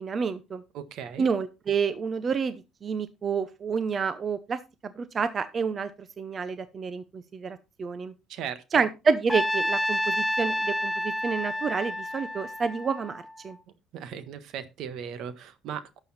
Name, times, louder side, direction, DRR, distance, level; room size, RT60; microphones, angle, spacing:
voice 1, 0.0-0.6 1.2-2.5 2.8-5.9 6.2-8.1 8.7-13.6, right 5 dB, 30° right, 0.7 m, -29 dB
voice 2, 0.7-1.3 8.3-8.8 13.9-16.0, right 8 dB, 65° right, 1.4 m, -37 dB
Trumpet, 9.3-13.5, left 1 dB, 5° left, 0.6 m, -29 dB
11.5 x 7.0 x 4.2 m
cardioid pair, 145°, 0 cm